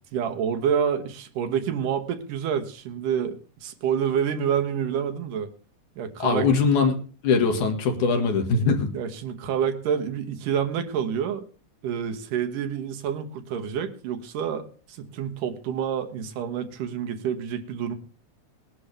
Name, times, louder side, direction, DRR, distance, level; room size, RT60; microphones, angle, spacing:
voice 1, 0.1-5.5 6.0-6.5 8.9-11.5 11.8-18.0, right 8 dB, 80° right, 8 dB, 2.8 m, -28 dB
voice 2, 6.2-6.9 7.2-8.9, left 5 dB, 70° left, 4 dB, 3.2 m, -21 dB
20.0 x 11.5 x 3.4 m, 0.37 s
omnidirectional pair, 3.7 m